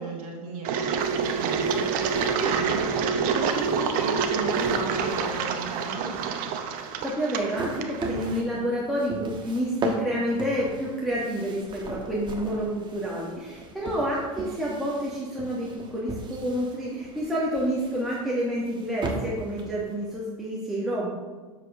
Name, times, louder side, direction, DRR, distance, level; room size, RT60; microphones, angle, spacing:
voice 1, 0.0-6.4, right 4 dB, 75° right, -2 dB, 1.4 m, -34 dB
Engine, 0.6-8.4, right 6 dB, 50° right, 0.8 m, -27 dB
sound 1, 1.0-20.2, right 2 dB, 25° right, 1.3 m, -38 dB
voice 2, 7.0-21.1, equal, ahead, -7 dB, 1.7 m, -29 dB
7.4 x 6.6 x 3.6 m, 1.3 s
hypercardioid pair, 95°, 18 cm